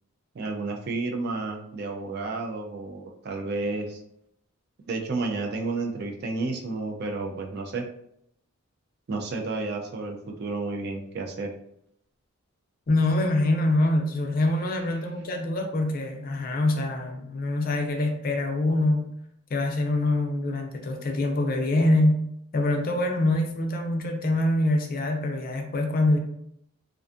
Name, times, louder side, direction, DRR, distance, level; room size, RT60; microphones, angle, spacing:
voice 1, 0.3-4.0 4.9-7.9 9.1-11.5, right 3 dB, 50° right, 2 dB, 0.3 m, -31 dB
voice 2, 12.9-19.1 19.5-22.2 22.5-26.2, left 2 dB, 40° left, 3 dB, 0.4 m, -24 dB
2.5 x 2.3 x 2.4 m, 0.73 s
head